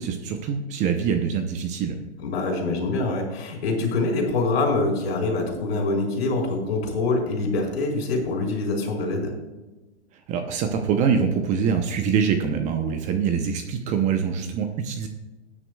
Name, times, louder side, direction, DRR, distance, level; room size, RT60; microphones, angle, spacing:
voice 1, 0.0-2.0 10.3-15.1, right 6 dB, 20° right, 6 dB, 0.8 m, -24 dB
voice 2, 2.2-9.3, left 3 dB, 60° left, 1 dB, 4.3 m, -25 dB
17.5 x 9.7 x 2.3 m, 1.1 s
hypercardioid pair, 135°, 34 cm